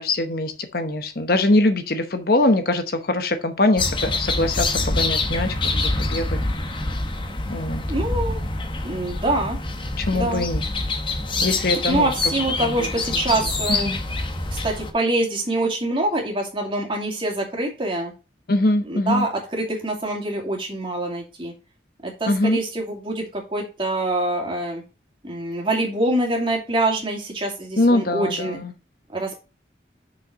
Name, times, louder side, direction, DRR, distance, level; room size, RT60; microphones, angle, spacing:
voice 1, 0.0-6.4 7.5-7.8 10.0-10.6 11.4-12.1 13.7-14.0 18.5-19.3 22.3-22.6 27.8-28.7, left 2 dB, 55° left, 8 dB, 0.9 m, -22 dB
sound 1, 3.8-14.9, left 2 dB, 25° left, 1.0 m, -26 dB
voice 2, 7.9-8.4 8.8-9.6 10.1-10.4 11.9-13.9 14.5-18.1 18.8-21.5 22.0-24.8 25.2-28.6 29.1-29.4, right 2 dB, 30° right, 0 dB, 2.5 m, -25 dB
6.4 x 5.6 x 4.9 m, 0.29 s
head